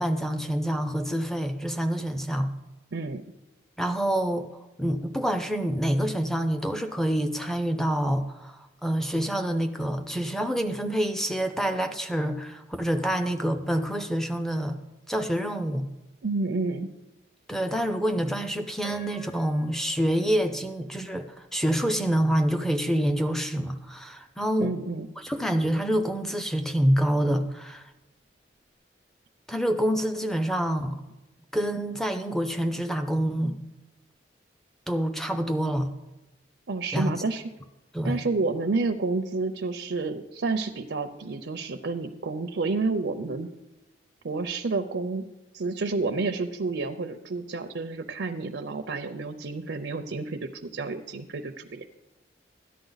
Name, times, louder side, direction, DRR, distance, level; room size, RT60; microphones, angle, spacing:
voice 1, 0.0-2.5 3.8-4.5 4.8-14.8 15.1-15.9 17.5-24.7 25.2-27.8 29.5-31.0 31.5-33.6 34.9-35.9 36.9-37.1 37.9-38.2, right 1 dB, ahead, 7 dB, 0.6 m, -27 dB
voice 2, 2.9-3.2 16.2-16.9 24.6-25.1 36.7-37.4 38.0-43.5 44.2-45.2 45.5-51.9, right 3 dB, 80° right, 5 dB, 0.6 m, -30 dB
Piano, 18.8-21.8 22.4-22.5 23.2-23.4, left 2 dB, 60° left, 4.2 m, -50 dB
13.5 x 10.0 x 4.0 m, 1.0 s
head